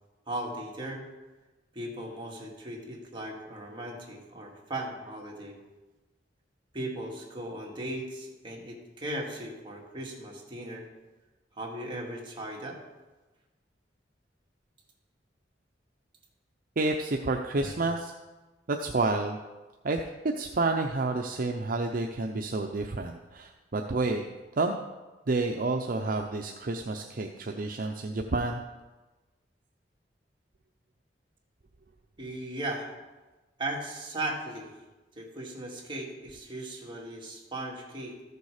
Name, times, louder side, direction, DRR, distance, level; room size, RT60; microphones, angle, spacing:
voice 1, 0.3-1.0 1.7-5.6 6.7-10.8 11.6-12.8 32.2-32.9 33.6-34.7 35.2-38.2, right 1 dB, 30° right, -2 dB, 2.1 m, -37 dB
voice 2, 16.8-18.1 18.7-19.4 19.8-20.0 20.4-24.2 24.6-24.7 25.3-28.6, right 3 dB, 50° right, 3 dB, 0.6 m, -29 dB
14.0 x 6.8 x 4.9 m, 1.2 s
head